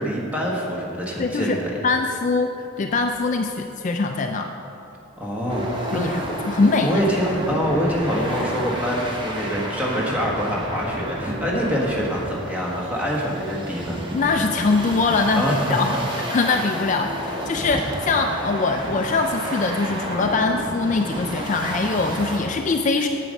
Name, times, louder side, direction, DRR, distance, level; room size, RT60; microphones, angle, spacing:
voice 1, 0.0-1.7 5.2-6.1 6.8-14.0 15.3-15.8, equal, 5° right, -4 dB, 1.4 m, -25 dB
voice 2, 1.2-4.5 5.9-6.9 14.1-16.0 16.3-23.1, left 3 dB, 35° left, 4 dB, 0.3 m, -22 dB
sound 1, 5.5-22.4, equal, 25° right, 1.0 m, -31 dB
9.0 x 7.6 x 5.3 m, 2.8 s
head